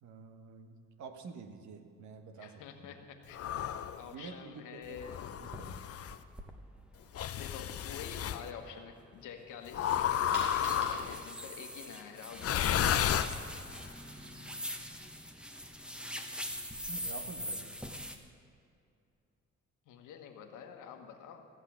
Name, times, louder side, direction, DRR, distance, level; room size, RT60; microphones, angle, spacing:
voice 1, 0.0-2.9 4.0-5.0 5.3-5.9 16.8-17.8, right 4 dB, 70° right, 7 dB, 1.2 m, -48 dB
voice 2, 2.4-3.5 4.0-5.2 7.3-12.8 19.9-21.5, left 7 dB, 85° left, 5 dB, 1.3 m, -48 dB
sound 1, 3.3-4.0 5.0-6.2 7.1-8.4 9.7-11.3 12.4-13.8, left 9 dB, 50° left, 0.6 m, -32 dB
sound 2, 5.4-5.6 6.1-6.5 7.0-7.1 7.6-7.7 7.9-18.2, equal, 5° right, 1.0 m, -43 dB
Coin (dropping), 10.3-16.0, right 1 dB, 90° right, 3.8 m, -51 dB
14.5 x 5.8 x 8.5 m, 2.5 s
cardioid pair, 90°, 30 cm